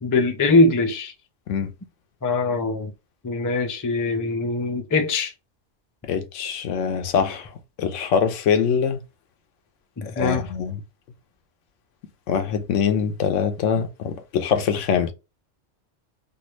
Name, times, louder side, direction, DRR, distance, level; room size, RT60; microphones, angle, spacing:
voice 1, 0.0-1.1 2.2-2.9 3.2-5.3 10.0-10.4, left 3 dB, 30° left, 0.4 m, -22 dB
voice 2, 6.0-7.5 7.8-9.0 10.0-10.8 12.3-15.1, left 7 dB, 85° left, 1.0 m, -23 dB
3.4 x 2.4 x 3.0 m
omnidirectional pair, 1.2 m